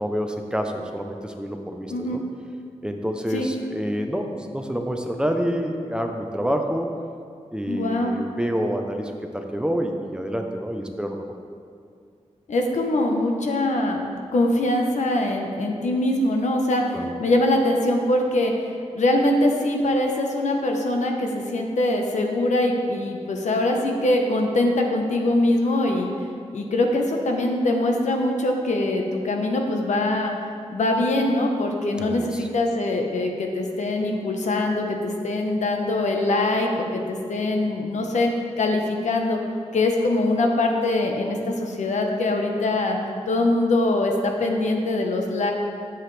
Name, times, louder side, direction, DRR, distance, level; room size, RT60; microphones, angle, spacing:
voice 1, 0.0-2.2 2.8-6.9 7.5-11.2 16.9-17.1 32.0-32.5, equal, 5° right, 3 dB, 0.5 m, -28 dB
voice 2, 1.9-2.2 3.3-3.5 7.7-8.1 12.5-14.0 14.3-18.5 18.9-26.1 26.5-30.3 30.7-38.3 38.6-39.4 39.7-43.0 43.3-45.5, left 2 dB, 85° left, 2 dB, 1.0 m, -23 dB
10.5 x 7.6 x 3.3 m, 2.3 s
wide cardioid pair, 160°, 12 cm